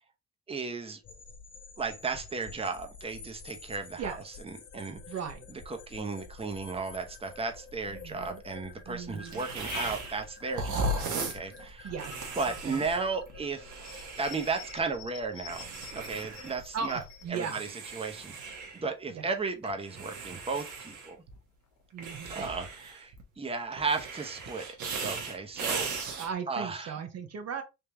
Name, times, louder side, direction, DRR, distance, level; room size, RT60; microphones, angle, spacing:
voice 1, 0.5-1.0 1.8-5.0 5.5-11.9 12.4-13.7 14.2-17.0 17.3-21.2 22.3-24.8 25.0-27.0, right 4 dB, 20° right, 0.8 m, -35 dB
sound 1, 1.0-17.3, left 4 dB, 40° left, 0.7 m, -49 dB
voice 2, 5.1-5.5 7.9-8.4 8.9-9.4 11.8-12.2 12.6-12.9 16.7-17.6 19.1-19.3 21.9-22.5 26.1-27.6, right 6 dB, 55° right, 0.8 m, -37 dB
sound 2, 8.9-23.0, left 8 dB, 80° left, 0.8 m, -53 dB
sound 3, 9.3-10.2 10.5-14.9 15.4-16.6 16.9-18.8 19.6-21.4 22.0-23.2 23.7-26.3, right 3 dB, 80° right, 1.1 m, -37 dB
3.5 x 2.8 x 3.3 m
cardioid pair, 90°, 30 cm